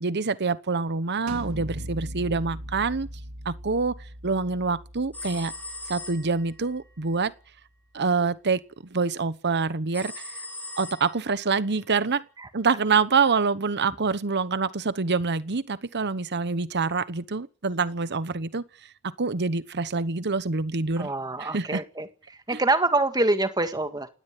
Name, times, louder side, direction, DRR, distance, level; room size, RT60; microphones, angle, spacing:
voice 1, 0.0-3.1 3.4-4.0 4.2-5.5 5.9-7.3 7.9-8.6 8.9-10.3 10.8-12.2 12.5-18.6 19.0-21.1 21.4-21.8 22.5-22.6, right 4 dB, 50° right, 1.0 m, -26 dB
sound 1, 1.3-6.9, equal, 75° right, 1.9 m, -40 dB
sound 2, 5.1-6.6 9.9-11.4, left 3 dB, 5° left, 3.9 m, -39 dB
voice 2, 21.0-24.1, right 2 dB, 20° right, 1.8 m, -25 dB
19.5 x 17.0 x 9.4 m
head